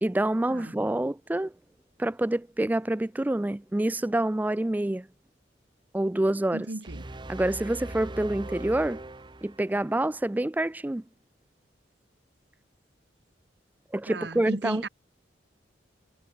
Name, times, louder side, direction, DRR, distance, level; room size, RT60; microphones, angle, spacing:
voice 1, 0.0-1.5 2.0-5.1 5.9-6.7 7.3-9.0 9.4-11.0 13.9-14.9, right 1 dB, 10° right, 0.3 m, -27 dB
voice 2, 6.5-7.0 14.1-14.9, right 2 dB, 65° right, 1.6 m, -35 dB
sound 1, 6.8-10.0, right 2 dB, 25° right, 0.9 m, -40 dB
head